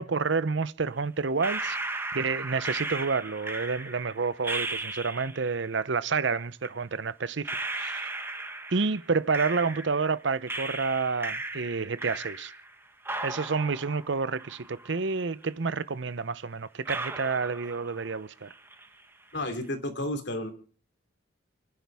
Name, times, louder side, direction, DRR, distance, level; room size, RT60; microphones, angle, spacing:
voice 1, 0.0-1.8 2.1-8.1 8.7-12.5 13.2-18.5, right 4 dB, 65° right, 0.7 m, -29 dB
sound 1, 1.4-5.5 6.6-6.7 7.4-10.1 10.5-12.7 13.0-15.1 15.4-15.5 16.2-16.3 16.8-18.2 18.4-19.0, right 2 dB, 10° right, 1.2 m, -36 dB
voice 2, 19.3-20.5, left 1 dB, 60° left, 3.0 m, -32 dB
29.5 x 10.5 x 3.5 m
head